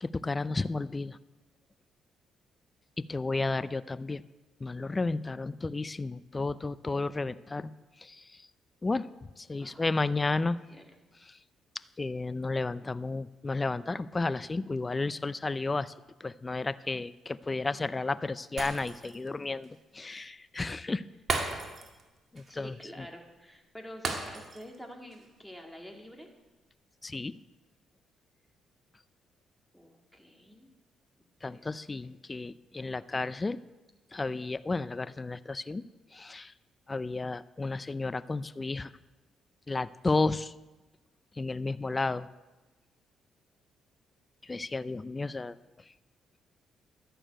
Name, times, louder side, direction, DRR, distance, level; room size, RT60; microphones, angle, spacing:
voice 1, 0.0-1.2 3.0-4.2 4.6-7.7 8.0-8.2 8.8-9.1 9.4-10.6 11.3-11.4 12.0-15.9 16.2-21.0 22.3-22.8 27.0-27.3 31.4-33.6 34.1-35.8 36.1-36.5 36.9-38.9 39.7-40.5 41.4-42.3 44.4-45.6, left 3 dB, 25° left, 16 dB, 0.4 m, -32 dB
voice 2, 9.6-10.9 22.5-26.3 29.7-30.7 31.2-32.1, equal, ahead, 2 dB, 2.2 m, -49 dB
Shatter, 18.6-19.3 19.6-19.8 21.3-22.1 22.4-22.5 24.0-24.8 25.1-25.3, right 3 dB, 45° right, 2.1 m, -35 dB
12.0 x 6.7 x 9.0 m, 1.1 s
cardioid pair, 90°, 0 cm